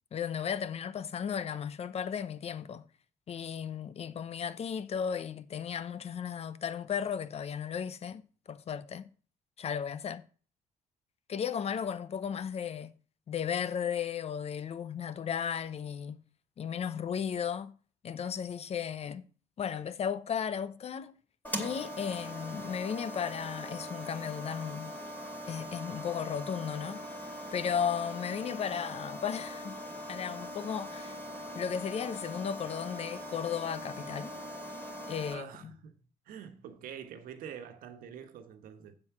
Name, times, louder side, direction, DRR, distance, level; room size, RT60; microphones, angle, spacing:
voice 1, 0.1-2.8 3.3-8.2 8.5-9.1 9.6-10.2 11.3-12.9 13.3-16.2 16.6-17.7 18.0-19.2 19.6-21.2 21.6-24.9 25.5-27.1 27.5-29.8 30.1-31.2 31.5-34.3 35.1-35.7, left 8 dB, 50° left, 0.8 m, -35 dB
sound 1, 21.4-35.3, equal, 10° left, 2.5 m, -41 dB
voice 2, 35.3-36.0 36.3-39.0, right 8 dB, 85° right, 1.4 m, -46 dB
7.8 x 7.6 x 6.0 m
cardioid pair, 105°, 14 cm